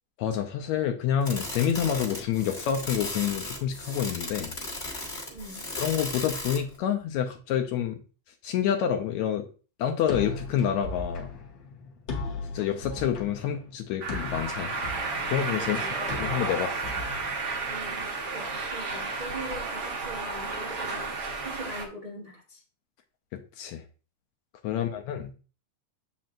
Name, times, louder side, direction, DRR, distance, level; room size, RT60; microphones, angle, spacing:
voice 1, 0.2-4.5 5.8-8.0 8.4-9.5 9.8-11.3 12.5-14.7 15.3-16.9 23.3-23.8 24.6-25.3, left 9 dB, 80° left, 5 dB, 1.7 m, -28 dB
sound 1, 1.2-6.7, left 2 dB, 30° left, 1.3 m, -36 dB
voice 2, 5.3-5.7 15.6-16.1 17.7-22.6 24.7-25.0, right 1 dB, 85° right, -4 dB, 0.3 m, -42 dB
sound 2, 10.1-18.0, left 3 dB, 60° left, 1.2 m, -38 dB
sound 3, 14.0-21.8, right 3 dB, 55° right, 1.2 m, -32 dB
7.3 x 5.2 x 2.5 m, 0.37 s
omnidirectional pair, 3.6 m